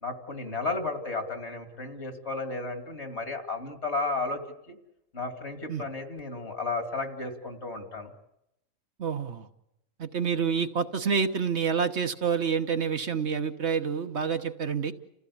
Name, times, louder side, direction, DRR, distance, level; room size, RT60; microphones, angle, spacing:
voice 1, 0.0-4.4 4.7-4.8 5.1-8.1, left 3 dB, 60° left, 6 dB, 2.9 m, -33 dB
voice 2, 9.0-9.5 10.0-14.9, right 6 dB, 60° right, 7 dB, 1.4 m, -28 dB
29.5 x 15.5 x 8.4 m, 0.83 s
omnidirectional pair, 1.3 m